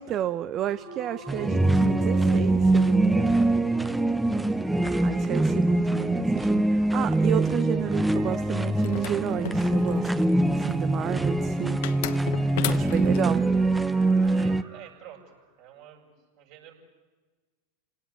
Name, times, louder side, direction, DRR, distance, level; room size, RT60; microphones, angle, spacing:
voice 1, 0.0-3.5 5.0-11.8 12.7-13.5, right 11 dB, 40° right, 13 dB, 0.8 m, -31 dB
sound 1, 0.7-15.2, right 1 dB, 75° right, 7.2 m, -46 dB
sound 2, 1.3-14.6, right 2 dB, 5° right, 1.1 m, -23 dB
sound 3, 8.8-10.3 11.8-13.2, left 13 dB, 60° left, 1.1 m, -34 dB
voice 2, 14.1-16.7, right 10 dB, 55° right, 1 dB, 7.8 m, -49 dB
29.5 x 18.0 x 9.6 m, 1.3 s
hypercardioid pair, 90°, 0 cm